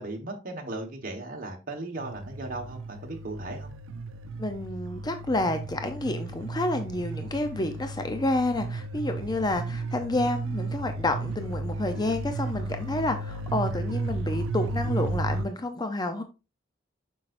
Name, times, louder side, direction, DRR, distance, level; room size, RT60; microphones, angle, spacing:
voice 1, 0.0-3.7, right 2 dB, 45° right, 1 dB, 1.4 m, -37 dB
sound 1, 2.0-15.4, right 2 dB, 85° right, 0.6 m, -34 dB
voice 2, 4.4-16.2, left 2 dB, 20° left, 7 dB, 0.7 m, -29 dB
7.3 x 6.4 x 2.6 m, 0.29 s
head